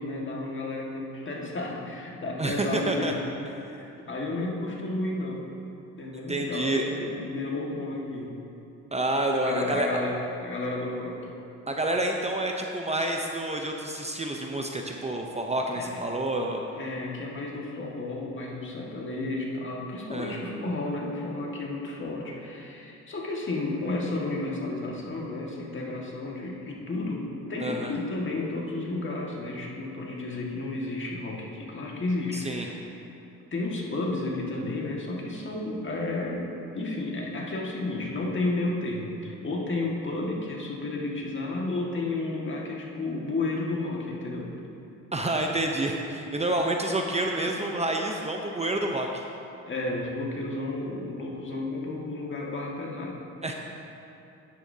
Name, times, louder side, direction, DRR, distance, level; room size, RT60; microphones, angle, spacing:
voice 1, 0.0-3.2 3.6-5.5 6.0-8.3 9.4-11.3 15.8-16.0 16.8-32.9 33.5-36.5 36.7-44.7 49.7-53.2, left 2 dB, 40° left, -2 dB, 1.8 m, -32 dB
voice 2, 2.4-3.1 6.3-6.9 8.9-9.9 11.7-16.6 20.1-20.4 27.6-27.9 32.3-32.7 45.1-49.1 53.4-53.5, right 1 dB, 20° right, 1 dB, 0.7 m, -28 dB
10.5 x 9.8 x 2.8 m, 2.9 s
cardioid pair, 90°, 30 cm